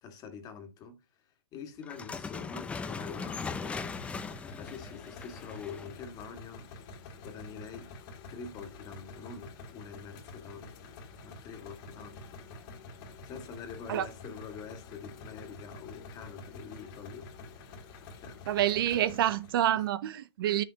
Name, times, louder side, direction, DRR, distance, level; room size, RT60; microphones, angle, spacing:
voice 1, 0.0-4.0 4.6-6.7 7.2-7.9 8.3-10.9 11.2-12.5 13.2-17.3 18.2-18.4 19.8-19.9, left 6 dB, 30° left, 1.8 m, -45 dB
sound 1, 1.8-6.0, left 5 dB, 10° left, 0.5 m, -39 dB
sound 2, 2.8-19.7, left 3 dB, 45° left, 2.0 m, -48 dB
voice 2, 18.5-20.6, right 11 dB, 60° right, 0.6 m, -27 dB
8.7 x 6.5 x 2.8 m
hypercardioid pair, 140°, 14 cm